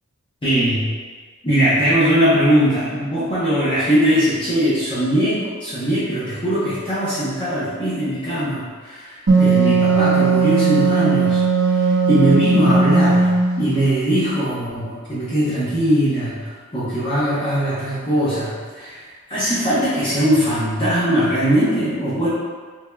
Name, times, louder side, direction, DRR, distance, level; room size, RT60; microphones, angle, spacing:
voice 1, 0.4-0.8 1.4-13.3 13.6-19.0 19.3-22.3, equal, 25° left, -12 dB, 0.7 m, -20 dB
Wind instrument woodwind instrument, 9.3-13.7, right 4 dB, 75° right, 0.7 m, -17 dB
3.5 x 3.2 x 2.2 m, 1.5 s
head